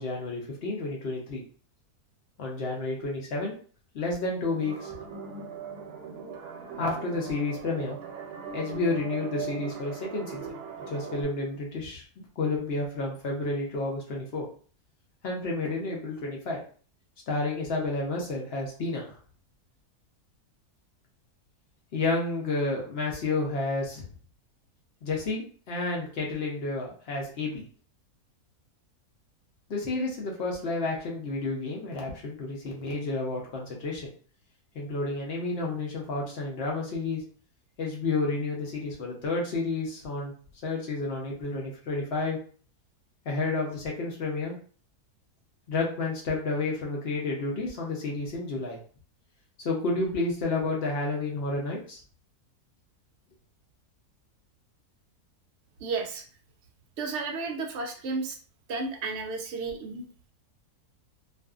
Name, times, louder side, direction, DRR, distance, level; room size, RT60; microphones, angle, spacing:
voice 1, 0.0-1.4 2.4-3.6 3.9-4.9 6.8-8.0 8.5-10.6 10.9-12.0 12.4-14.5 15.2-16.6 17.3-19.1 21.9-24.1 25.0-27.6 29.7-34.1 34.8-37.2 37.8-40.3 40.6-42.4 43.3-44.5 45.7-48.8 49.6-52.0, left 3 dB, 65° left, -1 dB, 0.6 m, -30 dB
sound 1, 4.5-11.2, right 6 dB, 85° right, 1.2 m, -40 dB
voice 2, 55.8-56.2 57.0-58.4 58.7-60.3, right 4 dB, 65° right, 2 dB, 0.7 m, -33 dB
2.5 x 2.4 x 2.3 m, 0.42 s
omnidirectional pair, 1.7 m